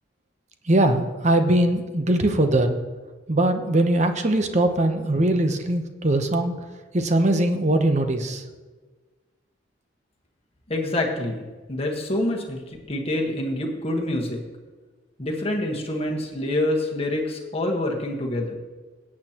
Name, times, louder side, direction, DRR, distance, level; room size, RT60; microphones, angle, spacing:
voice 1, 0.7-2.8 3.3-6.5 6.9-8.4, right 1 dB, 40° right, 6 dB, 0.9 m, -21 dB
voice 2, 10.7-11.4 11.7-14.4 15.2-18.6, left 1 dB, 35° left, 1 dB, 1.4 m, -26 dB
17.0 x 8.6 x 3.0 m, 1.3 s
head